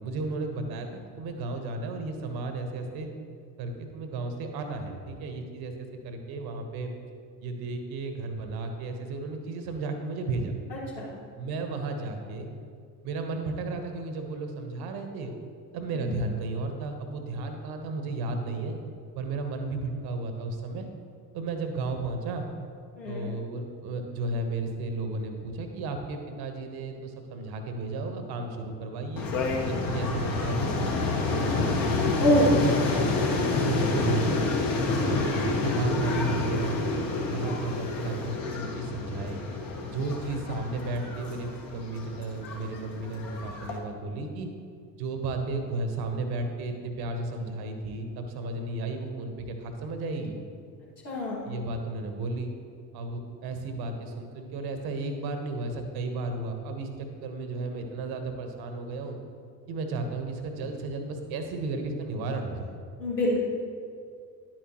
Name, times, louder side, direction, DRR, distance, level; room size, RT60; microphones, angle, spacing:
voice 1, 0.0-3.1 3.6-6.9 7.4-10.5 11.4-12.5 13.0-15.3 15.7-18.8 19.1-20.9 21.3-22.4 23.0-29.3 29.6-31.7 32.1-32.4 33.0-33.2 33.6-34.3 34.7-36.8 37.3-39.4 39.8-44.5 44.9-50.4 51.4-52.5 52.9-59.2 59.7-62.8, right 3 dB, 50° right, 5 dB, 1.2 m, -33 dB
voice 2, 10.7-11.2 15.9-16.2 23.0-23.4 32.2-32.6 51.0-51.6 63.0-63.4, equal, 80° left, -5 dB, 2.3 m, -26 dB
sound 1, 29.2-43.8, left 3 dB, 40° left, 1.5 m, -28 dB
10.5 x 8.9 x 3.0 m, 2.2 s
figure-of-eight pair, 60°, 49 cm